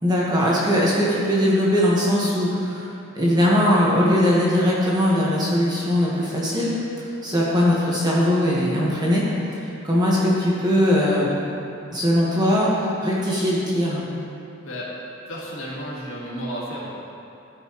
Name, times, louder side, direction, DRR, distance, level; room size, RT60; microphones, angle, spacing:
voice 1, 0.0-2.9 3.1-6.7 7.0-9.2 9.6-11.3 11.9-14.0, equal, 20° right, -6 dB, 1.4 m, -20 dB
voice 2, 15.3-16.9, equal, 65° left, -5 dB, 1.8 m, -32 dB
14.0 x 5.4 x 3.1 m, 2.7 s
head